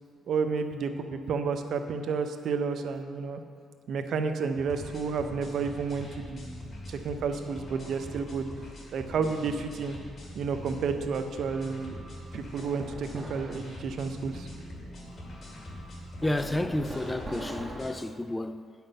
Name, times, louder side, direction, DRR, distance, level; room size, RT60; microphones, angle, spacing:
voice 1, 0.3-3.4 3.9-8.5 8.9-10.0 10.3-11.9 12.3-14.5, right 5 dB, 65° right, 0.6 m, -31 dB
sound 1, 4.6-17.9, left 1 dB, 45° left, 2.3 m, -43 dB
sound 2, 12.6-13.6 16.2-18.0, equal, 20° right, 1.3 m, -41 dB
voice 2, 16.2-18.7, left 1 dB, 15° left, 0.3 m, -31 dB
8.9 x 5.8 x 5.4 m
cardioid pair, 90°, 0 cm